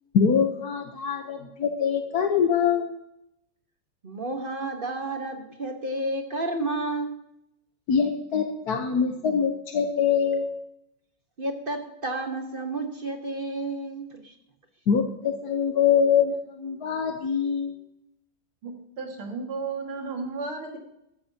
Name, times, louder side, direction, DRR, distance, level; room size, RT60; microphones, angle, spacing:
voice 1, 0.1-2.9 7.9-10.5 14.9-17.7, left 7 dB, 55° left, 4 dB, 1.3 m, -24 dB
voice 2, 4.0-7.2 11.4-14.3, right 2 dB, 30° right, 5 dB, 1.2 m, -31 dB
voice 3, 18.6-20.8, right 4 dB, 80° right, 2 dB, 2.9 m, -34 dB
15.0 x 13.0 x 2.9 m, 0.82 s
omnidirectional pair, 2.3 m